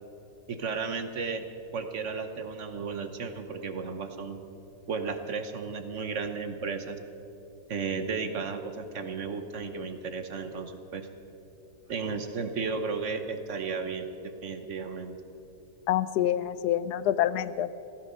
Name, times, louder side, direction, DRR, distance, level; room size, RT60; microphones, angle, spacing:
voice 1, 0.5-1.5 1.7-4.4 4.9-7.0 7.7-11.1 11.9-15.1, right 5 dB, 55° right, 8 dB, 1.2 m, -34 dB
voice 2, 15.9-17.7, left 11 dB, 85° left, 15 dB, 1.2 m, -27 dB
16.5 x 14.5 x 5.5 m, 2.8 s
omnidirectional pair, 1.7 m